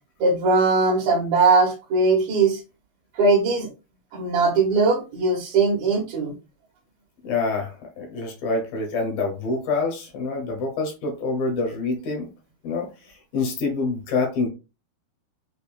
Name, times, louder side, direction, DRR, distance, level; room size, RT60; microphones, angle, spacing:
voice 1, 0.2-2.6 3.2-3.7 4.1-6.3, right 3 dB, 60° right, 2.1 m, -20 dB
voice 2, 7.2-12.3 12.6-12.9 13.3-14.5, left 3 dB, 70° left, 2.8 m, -26 dB
6.8 x 2.6 x 2.4 m
omnidirectional pair, 4.4 m